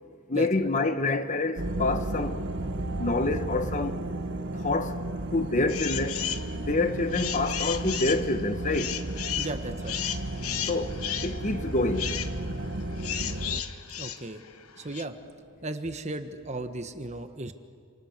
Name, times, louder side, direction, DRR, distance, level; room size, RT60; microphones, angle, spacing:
voice 1, 0.3-2.4 3.0-4.0 4.5-5.0 5.3-6.2 6.5-9.0 10.7-11.0 11.2-12.2, left 2 dB, 35° left, 1.1 m, -27 dB
sound 1, 1.6-13.6, right 1 dB, 55° right, 1.3 m, -33 dB
sound 2, 5.7-6.5 6.9-15.0, left 10 dB, 80° left, 1.3 m, -34 dB
voice 2, 9.4-10.0 14.0-14.4 14.8-15.2 15.6-17.5, right 2 dB, 30° right, 1.3 m, -35 dB
28.5 x 28.0 x 6.7 m
head